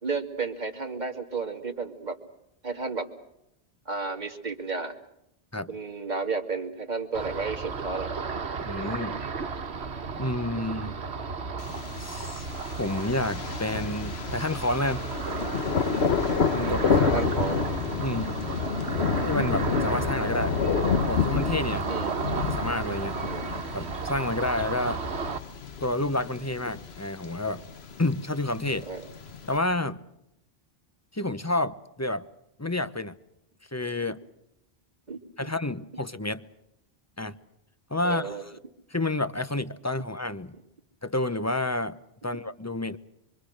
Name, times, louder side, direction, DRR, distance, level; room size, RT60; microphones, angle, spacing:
voice 1, 0.0-2.2 2.6-3.1 3.9-5.0 5.7-8.1 16.6-17.6 21.9-22.2 23.3-23.4 28.9-29.1 35.1-35.5 38.0-38.4, right 4 dB, 45° right, 4 dB, 2.4 m, -32 dB
Ocean, 7.1-25.4, right 4 dB, 85° right, 1.5 m, -33 dB
voice 2, 8.7-9.2 10.2-10.9 12.0-12.5 12.8-15.0 16.5-17.2 18.0-18.4 19.3-20.6 21.1-21.9 22.3-23.2 23.7-25.0 25.8-27.6 28.0-28.9 29.5-30.0 31.1-32.3 32.6-33.1 33.7-34.2 35.4-36.4 37.2-37.4 37.9-38.5 38.9-40.6 41.0-42.0 42.2-43.0, left 2 dB, 15° left, 13 dB, 0.9 m, -29 dB
Thunder, 11.6-29.6, left 5 dB, 75° left, 1.4 m, -30 dB
25.5 x 25.0 x 6.5 m, 0.84 s
omnidirectional pair, 1.1 m